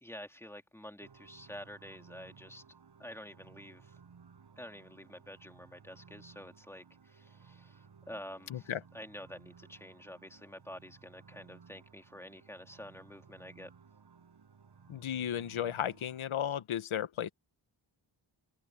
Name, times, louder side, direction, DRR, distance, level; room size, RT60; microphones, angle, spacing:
voice 1, 0.0-2.6 3.0-3.9 4.6-13.7, left 1 dB, 5° left, 2.7 m, -49 dB
sound 1, 1.0-16.3, right 6 dB, 55° right, 5.7 m, -58 dB
voice 2, 8.5-8.8 14.9-17.3, left 10 dB, 85° left, 1.5 m, -34 dB
cardioid pair, 90°, 47 cm